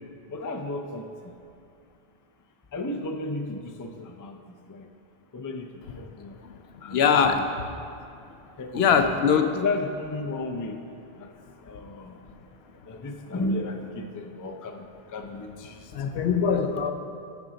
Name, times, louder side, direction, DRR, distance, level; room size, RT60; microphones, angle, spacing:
voice 1, 0.3-1.3 2.7-4.9 5.3-5.7 6.0-6.4 6.8-7.5 8.6-9.0 9.5-10.8 11.2-11.3 11.6-12.2 12.9-14.8 15.1-15.9, left 2 dB, 30° left, 4 dB, 0.3 m, -33 dB
voice 2, 6.9-7.7 8.7-9.6 15.9-16.9, left 6 dB, 85° left, 7 dB, 0.9 m, -22 dB
9.5 x 6.3 x 3.9 m, 2.5 s
omnidirectional pair, 1.0 m